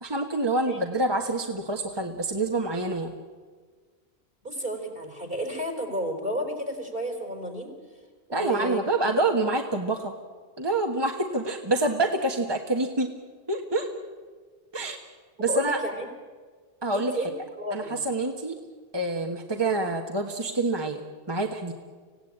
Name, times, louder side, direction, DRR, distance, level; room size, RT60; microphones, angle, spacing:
voice 1, 0.0-3.1 8.3-10.1 10.6-13.1 13.5-13.9 14.7-15.0 15.4-15.8 16.8-17.1 17.7-18.6 18.9-21.0 21.3-21.7, right 2 dB, 25° right, 2 dB, 1.5 m, -26 dB
voice 2, 4.4-7.7 8.3-9.1 15.4-16.0 16.9-17.3 17.6-18.0, equal, 55° right, 4 dB, 4.5 m, -32 dB
25.5 x 17.0 x 9.0 m, 1.5 s
omnidirectional pair, 1.1 m